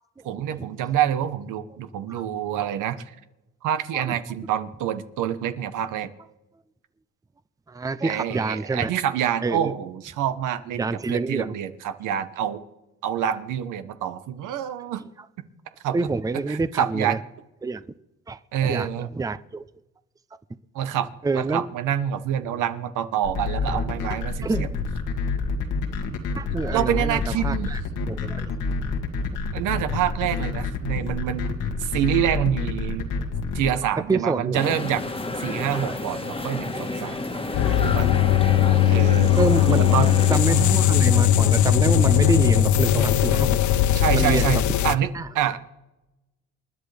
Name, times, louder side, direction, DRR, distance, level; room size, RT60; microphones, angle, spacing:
voice 1, 0.2-3.0 3.6-6.1 8.0-12.6 13.0-15.0 15.8-16.0 16.5-17.2 18.5-19.1 20.7-24.7 26.7-27.7 29.5-33.1 33.5-35.0 35.4-37.2 37.8-38.1 38.9-39.3 39.9-40.1 40.5-40.8 43.9-45.1 45.3-45.6, right 10 dB, 90° right, 1.1 m, -27 dB
voice 2, 7.7-8.9 9.4-9.7 10.8-11.5 15.9-17.2 17.6-17.9 18.3-19.7 21.2-21.7 22.5-22.6 23.7-23.8 24.4-24.8 26.3-27.8 28.1-28.5 33.9-34.6 35.8-36.0 36.7-37.8 39.3-40.0 40.3-43.6 44.1-44.6 45.1-45.3, right 3 dB, 10° right, 0.5 m, -27 dB
sound 1, 23.2-33.7, left 4 dB, 90° left, 2.1 m, -28 dB
sound 2, 34.5-40.4, left 2 dB, 20° left, 1.4 m, -30 dB
sound 3, 37.5-45.0, left 11 dB, 75° left, 0.7 m, -19 dB
28.0 x 11.0 x 3.4 m
cardioid pair, 90°, 30 cm